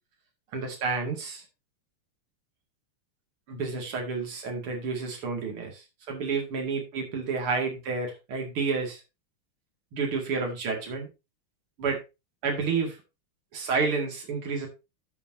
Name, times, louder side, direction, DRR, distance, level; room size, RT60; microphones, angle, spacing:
voice 1, 0.5-1.4 3.5-9.0 9.9-11.1 11.8-12.0 12.4-13.0 13.5-14.7, right 4 dB, 75° right, 1 dB, 3.2 m, -30 dB
12.5 x 7.1 x 2.7 m, 0.26 s
omnidirectional pair, 2.4 m